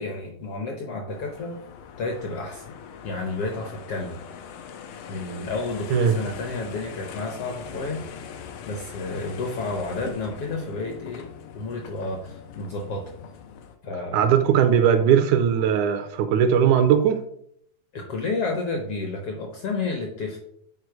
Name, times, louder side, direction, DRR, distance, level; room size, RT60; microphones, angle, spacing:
voice 1, 0.0-1.6 2.0-2.6 3.0-4.2 5.1-8.2 8.7-11.2 11.5-13.0 13.8-14.4 17.9-20.4, left 3 dB, 70° left, 2 dB, 1.4 m, -31 dB
sound 1, 1.1-13.8, left 7 dB, 90° left, 2.4 m, -41 dB
voice 2, 14.1-17.2, right 8 dB, 80° right, 8 dB, 1.8 m, -19 dB
8.2 x 4.4 x 4.7 m, 0.71 s
omnidirectional pair, 3.7 m